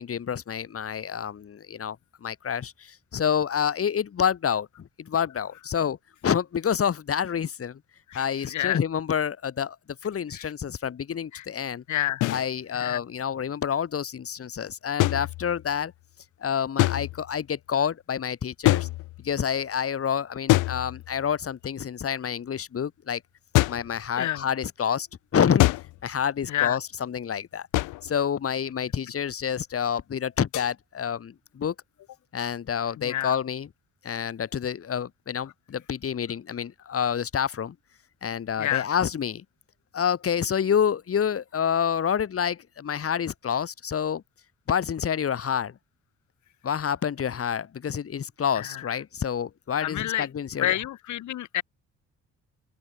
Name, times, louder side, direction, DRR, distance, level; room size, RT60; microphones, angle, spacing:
voice 1, 0.0-6.0 6.2-7.8 8.1-9.8 10.0-11.8 12.3-15.9 16.4-18.9 19.2-23.2 23.7-25.1 25.3-25.7 26.0-27.7 28.0-31.7 32.3-33.7 34.0-37.7 38.2-39.4 39.9-44.2 44.7-45.7 46.6-50.8, left 8 dB, 50° left, 3.0 m, -28 dB
voice 2, 8.1-8.8 10.3-10.5 11.3-11.5 11.9-12.3 12.7-13.0 24.1-24.5 26.5-26.8 32.9-33.4 38.6-38.9 48.5-49.0 49.8-50.3 50.6-51.6, left 13 dB, 75° left, 1.6 m, -29 dB
sound 1, 12.2-12.5 15.0-15.8 16.8-17.4 18.6-19.4 20.5-21.3 23.5-24.0 25.6-26.1 27.7-28.2 30.5-30.7, left 19 dB, 90° left, 0.8 m, -25 dB
open air
cardioid pair, 90°, 30 cm